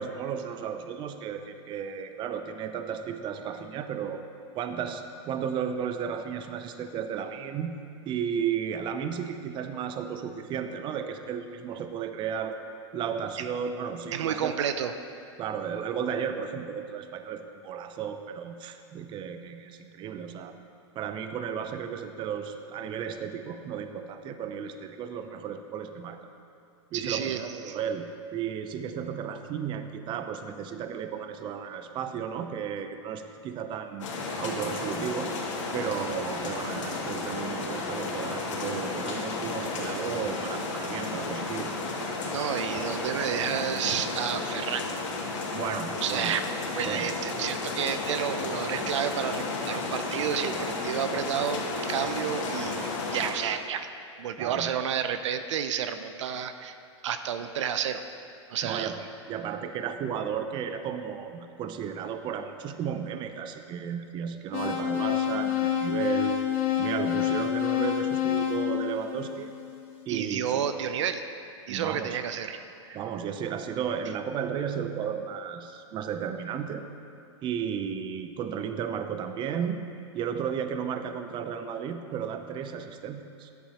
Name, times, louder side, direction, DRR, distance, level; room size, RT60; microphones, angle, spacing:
voice 1, 0.0-4.2 4.5-7.7 8.1-12.6 12.9-14.5 15.4-20.6 21.0-26.2 26.9-28.0 28.3-34.1 34.4-35.3 35.7-41.7 45.5-46.3 46.9-47.1 54.4-54.7 58.6-66.4 66.8-69.5 70.1-70.6 71.7-72.1 72.9-76.8 77.4-79.8 80.1-83.5, right 7 dB, 30° right, 8 dB, 0.6 m, -34 dB
voice 2, 14.1-14.9 26.9-27.8 42.3-44.9 46.0-46.4 46.7-52.8 53.1-53.9 54.2-56.7 57.0-58.0 58.5-58.9 70.1-71.3 71.7-72.6 72.9-73.0, right 8 dB, 75° right, 9 dB, 0.6 m, -30 dB
sound 1, 34.0-53.3, left 3 dB, 85° left, 2.3 m, -33 dB
sound 2, 64.5-69.7, left 10 dB, 40° left, 1.4 m, -28 dB
13.0 x 10.5 x 2.9 m, 2.5 s
hypercardioid pair, 125°, 16 cm